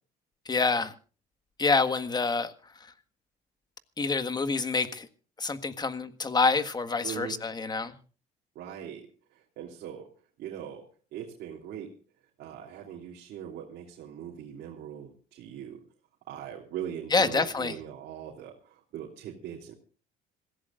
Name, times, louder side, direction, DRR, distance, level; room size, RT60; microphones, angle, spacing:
voice 1, 0.5-0.9 1.6-2.5 4.0-5.1 5.4-7.9 17.1-17.7, left 4 dB, 25° left, 1.6 m, -27 dB
voice 2, 7.0-7.4 8.5-9.1 9.6-10.1 10.4-10.9 11.1-11.9 12.4-15.8 16.3-19.8, right 9 dB, 80° right, 3.2 m, -40 dB
26.5 x 16.0 x 2.5 m
cardioid pair, 110°, 17 cm